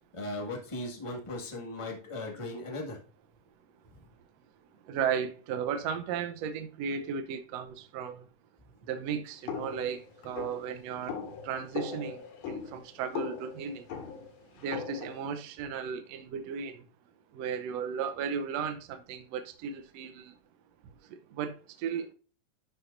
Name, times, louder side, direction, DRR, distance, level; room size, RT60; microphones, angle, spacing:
voice 1, 0.1-3.0, left 2 dB, 25° left, 0.6 m, -37 dB
voice 2, 4.8-8.2 8.8-11.2 11.4-13.9 14.6-16.8 17.3-20.3 21.1-22.1, right 7 dB, 90° right, 1.4 m, -35 dB
sound 1, 9.5-15.2, left 6 dB, 75° left, 3.4 m, -39 dB
11.0 x 6.3 x 2.6 m
omnidirectional pair, 4.1 m